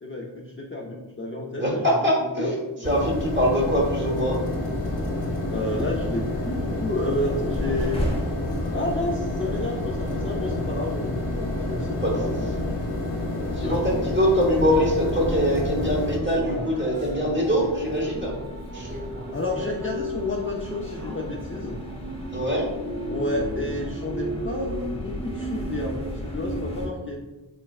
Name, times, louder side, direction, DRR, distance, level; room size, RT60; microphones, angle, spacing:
voice 1, 0.0-2.5 2.8-2.9 5.5-8.0 8.7-12.8 13.5-14.0 18.7-21.8 23.1-27.2, left 1 dB, 30° left, -2 dB, 0.3 m, -31 dB
voice 2, 1.5-2.6 2.8-4.4 12.0-12.1 13.6-18.3 18.7-18.9 22.3-22.6, equal, 25° right, -2 dB, 0.9 m, -23 dB
sound 1, 2.8-16.2, left 1 dB, 60° left, 0.7 m, -29 dB
sound 2, 7.1-26.9, left 1 dB, 10° left, 0.7 m, -34 dB
Human voice, 16.3-19.9 20.3-20.4 20.9-21.0, right 1 dB, 85° right, 1.5 m, -40 dB
3.2 x 3.2 x 2.3 m, 1.1 s
wide cardioid pair, 55°, 50 cm